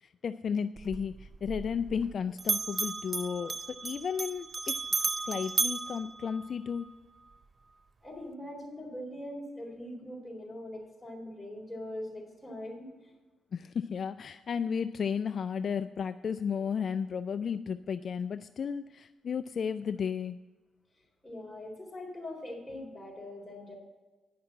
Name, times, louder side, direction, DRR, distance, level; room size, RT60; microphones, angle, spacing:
voice 1, 0.0-6.9 13.5-20.4, left 6 dB, 55° left, 11 dB, 0.3 m, -34 dB
Bell, 0.8-2.1 2.4-6.9, right 4 dB, 35° right, 0.4 m, -34 dB
voice 2, 8.0-13.1 21.2-23.7, left 1 dB, 10° left, -1 dB, 3.8 m, -42 dB
10.0 x 5.9 x 7.6 m, 1.3 s
cardioid pair, 90°, 0 cm